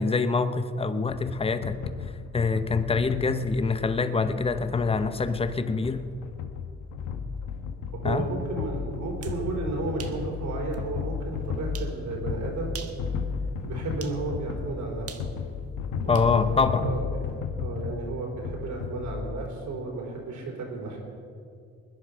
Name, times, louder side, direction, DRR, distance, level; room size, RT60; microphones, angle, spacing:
voice 1, 0.0-1.8 2.3-6.1 8.0-8.3 16.1-16.9, left 4 dB, 20° left, 11 dB, 0.8 m, -25 dB
sound 1, 1.1-19.5, left 6 dB, 85° left, 1.2 m, -34 dB
voice 2, 7.9-12.7 13.6-15.2 16.0-21.0, right 3 dB, 70° right, 0 dB, 4.3 m, -33 dB
sound 2, 9.0-9.4 10.0-10.2 10.7-10.8 11.7-12.0 12.6-13.0 14.0-14.2 15.1-16.3, right 7 dB, 50° right, 1.3 m, -43 dB
21.0 x 10.0 x 5.6 m, 2.4 s
cardioid pair, 90°, 30 cm